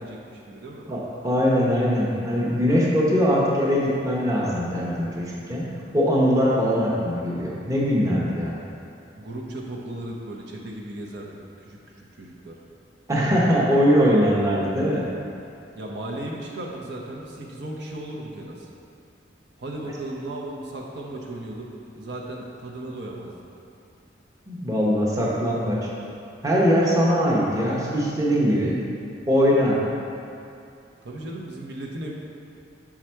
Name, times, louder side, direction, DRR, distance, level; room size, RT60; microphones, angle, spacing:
voice 1, 0.0-0.9 9.2-12.6 15.7-18.7 19.6-23.4 25.1-25.7 31.0-32.1, right 1 dB, 65° right, -2 dB, 0.7 m, -36 dB
voice 2, 0.9-5.7 5.9-8.6 13.1-15.1 24.5-25.9 26.4-28.8 29.3-29.8, equal, 20° right, -5 dB, 0.8 m, -21 dB
5.9 x 4.8 x 4.4 m, 2.5 s
head